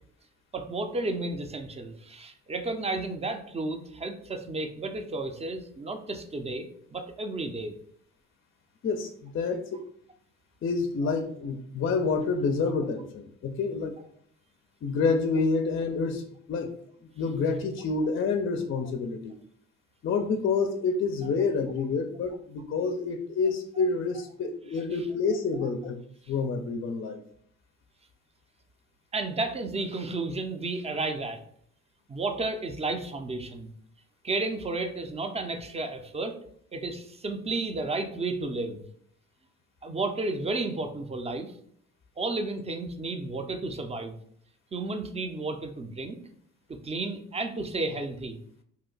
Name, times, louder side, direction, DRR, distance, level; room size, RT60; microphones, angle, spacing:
voice 1, 0.5-7.7 29.1-31.4 32.1-33.7 34.2-36.3 36.7-38.8 39.8-41.5 42.2-44.2 44.7-46.2 46.8-48.4, right 2 dB, 20° right, 6 dB, 0.4 m, -32 dB
voice 2, 8.8-9.8 10.6-14.0 14.8-16.7 17.2-19.4 20.0-26.0 26.3-27.2, left 4 dB, 45° left, 6 dB, 0.4 m, -28 dB
2.8 x 2.1 x 3.8 m, 0.63 s
cardioid pair, 90°, 30 cm